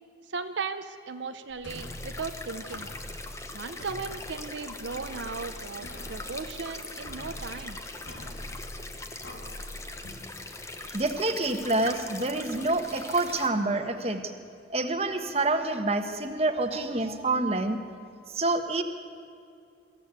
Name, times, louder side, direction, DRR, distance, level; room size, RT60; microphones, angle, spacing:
voice 1, 0.3-2.9 3.5-7.8, right 4 dB, 75° right, 8 dB, 0.8 m, -37 dB
sound 1, 1.5-11.0, equal, 90° left, 2.6 m, -44 dB
sound 2, 1.7-13.5, left 2 dB, 15° left, 1.1 m, -41 dB
voice 2, 10.9-14.2 14.7-17.8 18.3-18.8, right 2 dB, 30° right, 6 dB, 1.3 m, -27 dB
24.0 x 14.0 x 8.3 m, 2.4 s
head